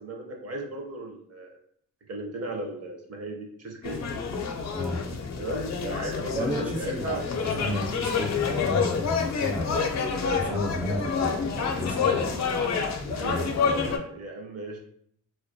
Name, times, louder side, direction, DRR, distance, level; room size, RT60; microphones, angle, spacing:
voice 1, 0.0-1.5 2.1-4.0 5.4-7.2 13.2-14.8, right 2 dB, 50° right, 2 dB, 0.6 m, -36 dB
sound 1, 3.8-14.0, left 5 dB, 55° left, 0.5 m, -28 dB
voice 2, 4.7-5.0 6.3-10.0 10.3-13.9, equal, 5° right, 0 dB, 0.4 m, -34 dB
2.2 x 2.1 x 2.6 m, 0.66 s
cardioid pair, 65°, 33 cm